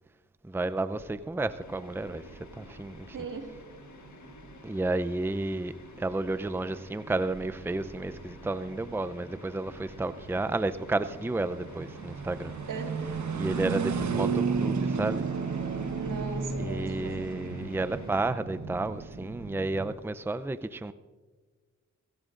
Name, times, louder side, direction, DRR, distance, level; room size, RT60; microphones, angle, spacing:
voice 1, 0.4-3.2 4.6-12.5 13.3-15.3 16.6-20.9, right 2 dB, 5° right, 0.6 m, -32 dB
sound 1, 1.0-20.0, right 5 dB, 65° right, 1.2 m, -35 dB
sound 2, 1.6-18.2, left 3 dB, 65° left, 1.5 m, -52 dB
voice 2, 3.1-3.5 12.7-13.1 15.9-17.3, right 4 dB, 80° right, 2.0 m, -38 dB
22.5 x 16.0 x 2.6 m
cardioid pair, 55°, 31 cm